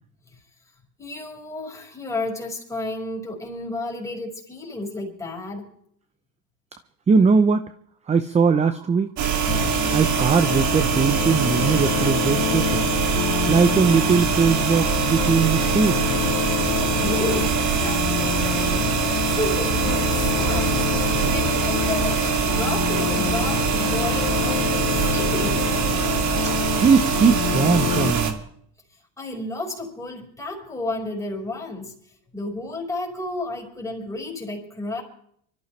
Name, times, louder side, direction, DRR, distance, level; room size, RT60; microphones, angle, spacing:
voice 1, 1.0-5.7 16.8-25.7 29.2-31.9 32.3-35.0, left 2 dB, 10° left, 5.1 m, -32 dB
voice 2, 7.1-7.7 8.1-9.1 9.9-12.8 13.5-16.1 26.8-28.4, right 5 dB, 20° right, 0.7 m, -20 dB
sound 1, 9.2-28.3, right 7 dB, 50° right, 2.5 m, -23 dB
sound 2, 9.5-28.1, left 14 dB, 45° left, 0.6 m, -27 dB
25.5 x 14.0 x 3.3 m
cardioid pair, 130°, 35 cm